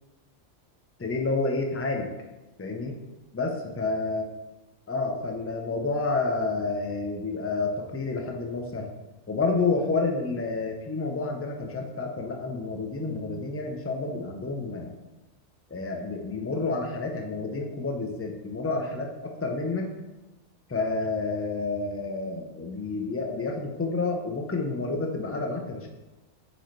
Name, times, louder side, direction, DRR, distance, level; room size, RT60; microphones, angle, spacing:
voice 1, 1.0-2.1 2.6-3.0 3.3-4.2 4.9-8.9 9.3-14.9 15.7-19.9 20.7-25.9, left 3 dB, 20° left, 2 dB, 0.4 m, -29 dB
8.4 x 4.0 x 3.2 m, 1.1 s
omnidirectional pair, 1.4 m